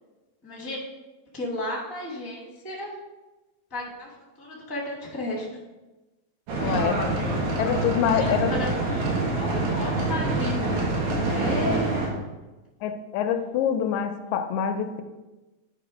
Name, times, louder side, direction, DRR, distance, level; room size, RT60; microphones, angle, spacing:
voice 1, 0.4-0.8 1.3-3.0 3.7-4.1 4.4-5.6 8.1-10.9 11.2-12.0, left 1 dB, 10° left, -3 dB, 1.0 m, -34 dB
sound 1, 6.5-12.1, right 2 dB, 80° right, 2.8 m, -26 dB
voice 2, 6.6-7.1 7.6-8.5 12.8-15.0, left 8 dB, 85° left, 7 dB, 2.0 m, -25 dB
10.0 x 3.6 x 4.9 m, 1.1 s
omnidirectional pair, 3.3 m